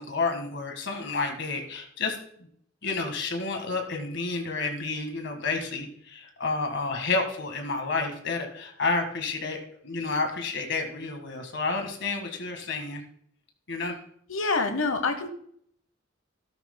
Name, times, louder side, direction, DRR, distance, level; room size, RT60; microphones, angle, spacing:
voice 1, 0.0-2.5 2.8-13.0 13.7-13.9, left 3 dB, 65° left, 4 dB, 1.7 m, -30 dB
voice 2, 14.3-15.3, left 3 dB, 85° left, 8 dB, 1.0 m, -26 dB
13.5 x 12.0 x 2.2 m, 0.65 s
head